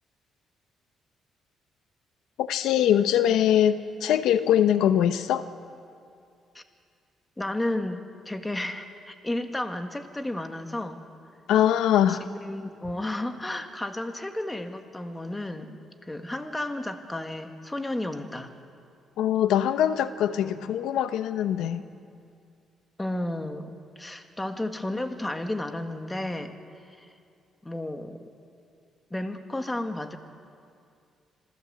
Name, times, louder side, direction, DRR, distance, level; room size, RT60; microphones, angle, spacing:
voice 1, 2.4-5.5 11.5-12.2 19.2-21.8, left 10 dB, 85° left, 11 dB, 0.8 m, -22 dB
voice 2, 7.4-11.0 12.1-18.5 20.4-20.5 23.0-26.5 26.9-27.1 27.6-28.3 29.1-30.2, left 1 dB, 15° left, 6 dB, 1.8 m, -33 dB
27.0 x 15.5 x 8.0 m, 2.4 s
cardioid pair, 90°, 0 cm